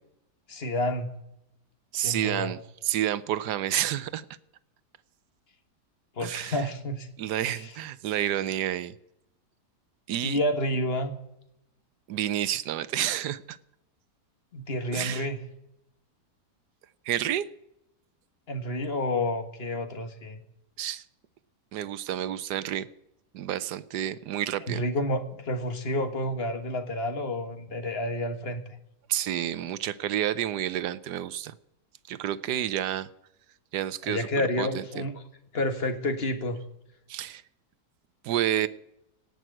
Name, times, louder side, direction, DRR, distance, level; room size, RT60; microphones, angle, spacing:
voice 1, 0.5-1.1 2.0-2.5 6.2-7.1 7.4-7.7 10.2-11.1 14.5-15.4 18.5-20.4 24.7-28.6 34.0-35.2 35.5-36.6, left 1 dB, 40° left, 8 dB, 1.7 m, -29 dB
voice 2, 1.9-2.6 2.8-4.2 6.2-6.6 7.2-8.9 10.1-10.4 12.1-13.6 14.9-15.3 17.1-17.5 20.8-21.0 21.7-22.9 23.3-24.8 29.1-31.5 32.1-33.1 33.7-34.3 34.6-34.8 37.1-37.4 38.2-38.7, right 11 dB, 80° right, 17 dB, 1.3 m, -29 dB
17.5 x 6.2 x 9.0 m, 0.82 s
omnidirectional pair, 1.8 m